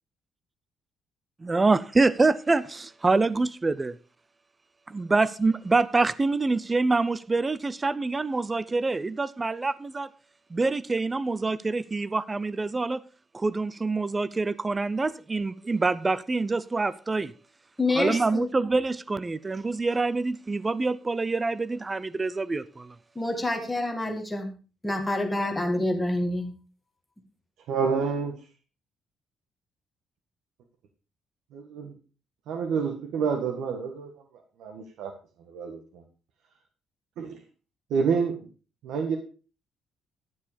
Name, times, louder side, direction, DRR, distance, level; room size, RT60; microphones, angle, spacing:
voice 1, 1.4-4.0 4.9-10.1 10.5-13.0 13.3-17.3 18.0-22.9, right 3 dB, 15° right, 0.4 m, -26 dB
voice 2, 17.8-18.5 23.2-24.5 24.8-26.5, left 2 dB, 5° left, 2.0 m, -27 dB
voice 3, 27.7-28.4 31.5-31.9 32.5-34.1 34.6-35.1 35.5-36.0 37.2-37.4 37.9-38.5 38.8-39.2, right 5 dB, 80° right, 1.6 m, -28 dB
12.0 x 7.4 x 5.1 m
cardioid pair, 180°, 0 cm